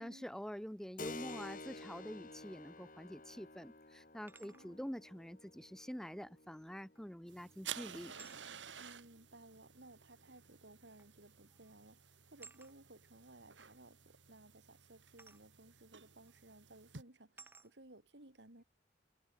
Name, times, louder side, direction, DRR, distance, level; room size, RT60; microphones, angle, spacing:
voice 1, 0.0-8.1, equal, 5° left, 0.7 m, -47 dB
Keyboard (musical), 1.0-9.2, left 2 dB, 45° left, 3.6 m, -52 dB
sound 1, 1.0-1.5 3.0-3.1 4.3-4.7 7.0-7.3 8.2-8.4 9.6-9.7 11.0-11.2 11.5-11.8 12.4-12.8 15.2-15.5 16.3-16.4 17.4-17.7, right 4 dB, 10° right, 1.4 m, -59 dB
voice 2, 4.4-4.8 8.8-18.6, right 2 dB, 70° right, 3.2 m, -59 dB
sound 2, 7.3-17.0, right 8 dB, 90° right, 2.8 m, -53 dB
head